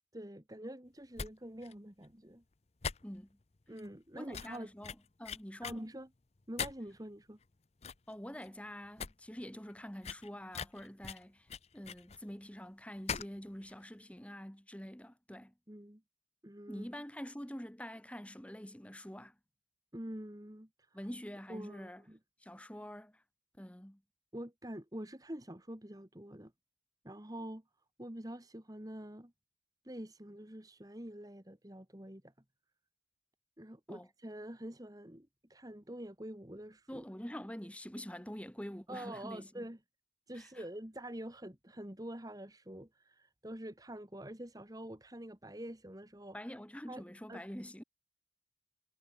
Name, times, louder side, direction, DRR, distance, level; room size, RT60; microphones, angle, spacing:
voice 1, 0.1-2.4 3.7-4.7 5.6-6.1 6.5-7.4 15.7-16.0 16.4-16.9 19.9-21.0 21.5-22.2 24.3-26.5 27.0-27.6 28.0-29.3 29.8-32.3 33.6-37.0 38.9-39.8 40.3-46.4 46.9-47.0 47.3-47.4, right 1 dB, 20° right, 2.1 m, -46 dB
sound 1, 1.2-1.3 1.6-1.7 2.0-2.1 2.8-3.4 3.8-3.9 4.3-4.6 4.8-5.8 6.6-7.0 7.4-7.5 7.8-8.1 8.4-8.5 8.8-9.1 9.4-9.5 10.0-12.2 13.1-13.4 13.6-13.7, left 6 dB, 35° left, 0.7 m, -41 dB
voice 2, 3.0-3.4 4.2-5.9 8.1-15.5 16.7-19.4 20.9-22.0 22.4-23.2 23.6-24.0 33.9-34.1 36.9-39.7 40.3-40.7 46.3-47.8, equal, 5° left, 1.9 m, -46 dB
head